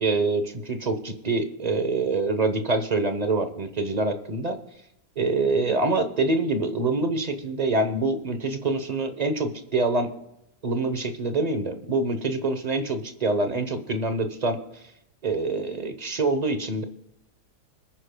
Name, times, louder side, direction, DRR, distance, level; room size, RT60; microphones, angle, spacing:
voice 1, 0.0-4.6 5.2-10.1 10.6-14.6 15.2-16.8, right 3 dB, 35° right, 8 dB, 0.7 m, -25 dB
25.0 x 9.7 x 2.2 m, 0.84 s
omnidirectional pair, 1.8 m